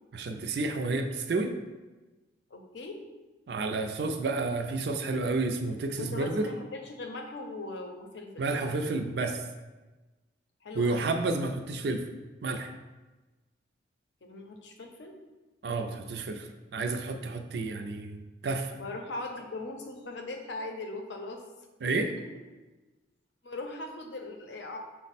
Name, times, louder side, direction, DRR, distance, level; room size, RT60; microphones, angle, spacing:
voice 1, 0.1-1.6 3.5-6.5 8.4-9.4 10.7-12.1 12.4-12.7 15.6-18.7 21.8-22.2, right 3 dB, 60° right, 6 dB, 0.4 m, -30 dB
voice 2, 2.5-3.0 6.0-8.6 10.6-11.1 14.2-15.2 18.8-21.4 23.4-24.8, left 2 dB, 70° left, 4 dB, 0.6 m, -39 dB
5.9 x 2.1 x 4.1 m, 1.2 s
head